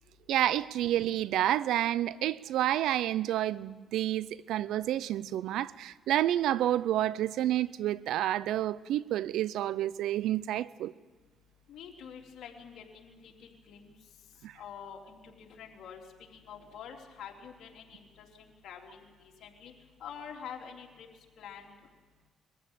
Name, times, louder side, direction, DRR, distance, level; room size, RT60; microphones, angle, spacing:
voice 1, 0.3-10.9 14.4-14.5, right 12 dB, 85° right, 0.6 m, -29 dB
voice 2, 11.7-13.9 14.5-19.7 20.0-21.1 21.4-21.9, left 7 dB, 75° left, 3.5 m, -47 dB
22.5 x 15.0 x 9.0 m
cardioid pair, 90°, 0 cm